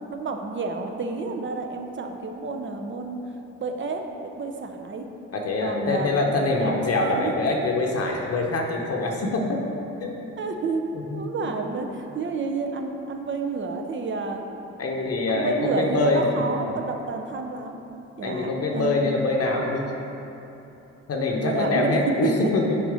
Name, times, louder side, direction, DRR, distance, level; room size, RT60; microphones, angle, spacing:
voice 1, 0.1-3.2 3.6-5.1 5.6-6.2 6.6-7.3 10.4-10.8 11.1-14.4 15.3-17.8 18.2-19.1 21.4-22.5, right 3 dB, 40° right, 4 dB, 0.7 m, -30 dB
voice 2, 5.3-9.6 10.0-10.3 11.1-11.7 14.8-16.6 18.2-19.8 21.1-22.8, left 2 dB, 50° left, 0 dB, 0.8 m, -24 dB
6.5 x 4.3 x 4.9 m, 3.0 s
cardioid pair, 90°, 30 cm